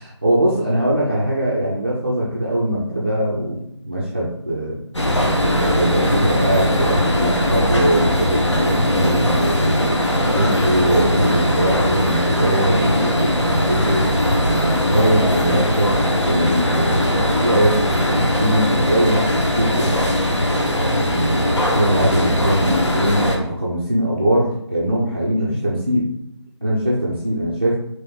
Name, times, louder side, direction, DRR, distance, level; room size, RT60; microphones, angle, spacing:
voice 1, 0.0-4.8 5.5-9.8 10.3-14.1 14.6-19.3 19.6-20.1 21.0-26.1 26.6-27.8, right 1 dB, 20° right, -7 dB, 0.4 m, -21 dB
sound 1, 4.9-23.4, equal, 70° left, 1.0 m, -19 dB
3.5 x 3.0 x 2.9 m, 0.78 s
figure-of-eight pair, 160°, 15 cm